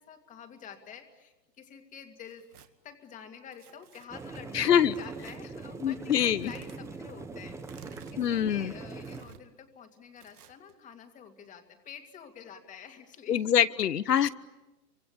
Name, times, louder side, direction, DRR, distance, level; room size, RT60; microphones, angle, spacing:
voice 1, 0.0-2.5 2.8-13.4, left 8 dB, 15° left, 6 dB, 2.4 m, -48 dB
Tearing, 2.2-2.7 3.5-4.1 5.1-5.4 6.2-6.8 7.6-8.2 9.0-9.4 10.2-10.7, right 9 dB, 65° right, 2.5 m, -54 dB
sound 1, 4.1-9.2, right 3 dB, 5° right, 1.2 m, -42 dB
voice 2, 4.5-4.9 5.8-6.5 8.2-8.7 13.3-14.3, left 9 dB, 70° left, 17 dB, 1.2 m, -24 dB
28.5 x 25.0 x 8.4 m, 1.0 s
hypercardioid pair, 140°, 49 cm